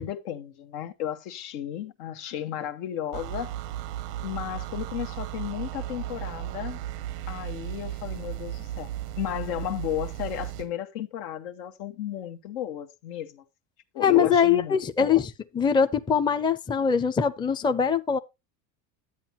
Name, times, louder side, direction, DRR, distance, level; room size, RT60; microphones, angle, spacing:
voice 1, 0.0-3.5 4.2-6.8 7.3-13.4 13.9-15.2, left 11 dB, 80° left, 1.3 m, -34 dB
sound 1, 3.1-10.7, right 12 dB, 90° right, 0.9 m, -35 dB
voice 2, 14.0-15.3 15.5-18.2, left 7 dB, 10° left, 0.5 m, -22 dB
11.0 x 8.5 x 3.0 m
supercardioid pair, 110°, 46 cm